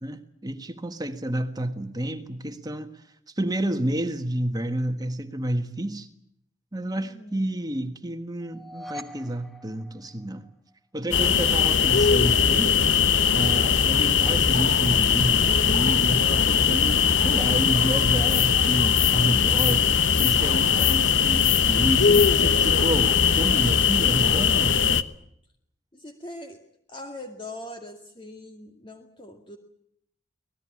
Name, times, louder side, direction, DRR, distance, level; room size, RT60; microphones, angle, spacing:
voice 1, 0.0-3.0 3.3-6.1 6.7-10.5 10.9-12.8 13.3-19.9 20.2-24.8, right 1 dB, 20° right, 1.5 m, -29 dB
voice 2, 7.0-7.4 25.9-26.6 26.9-29.6, left 1 dB, 25° left, 2.2 m, -41 dB
sound 1, 8.4-10.7, equal, ahead, 1.5 m, -43 dB
sound 2, 11.1-25.0, left 7 dB, 85° left, 1.2 m, -20 dB
25.5 x 19.0 x 8.7 m
head